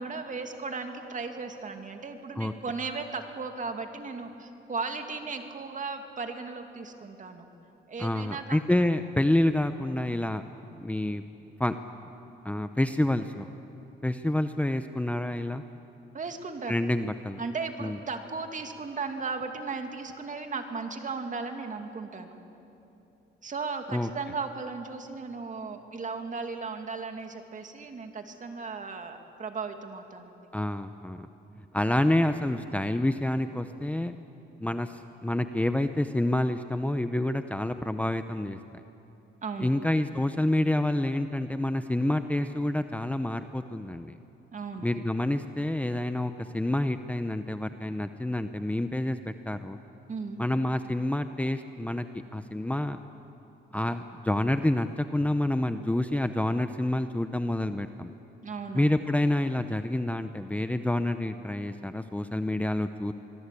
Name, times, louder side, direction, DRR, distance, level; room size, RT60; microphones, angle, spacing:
voice 1, 0.0-7.5 7.9-8.6 16.1-16.7 17.4-22.4 23.4-30.4 39.4-39.7 44.5-44.9 50.1-50.4 58.4-58.9, right 4 dB, 40° right, 5 dB, 2.5 m, -36 dB
voice 2, 8.0-10.4 10.8-11.2 11.6-11.8 12.4-13.5 14.0-15.6 16.7-17.4 17.8-18.0 23.9-24.1 30.5-31.3 31.7-34.1 34.6-38.6 39.6-44.2 44.8-49.8 50.4-52.1 52.3-53.0 53.7-58.1 58.7-63.1, left 1 dB, 5° left, 9 dB, 0.8 m, -28 dB
25.0 x 21.5 x 8.4 m, 2.9 s
cardioid pair, 90°, 20 cm